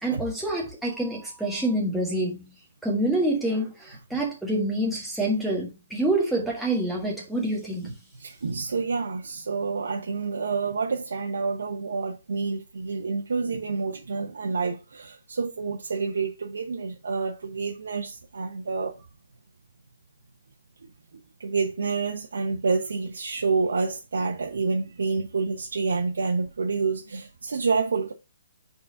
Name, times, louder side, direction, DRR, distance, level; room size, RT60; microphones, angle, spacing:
voice 1, 0.0-2.5 2.8-8.0, right 1 dB, ahead, 1.6 m, -27 dB
voice 2, 8.2-19.1 20.8-28.1, right 4 dB, 80° right, 1.0 m, -28 dB
4.8 x 4.1 x 5.1 m
hypercardioid pair, 165°, 0 cm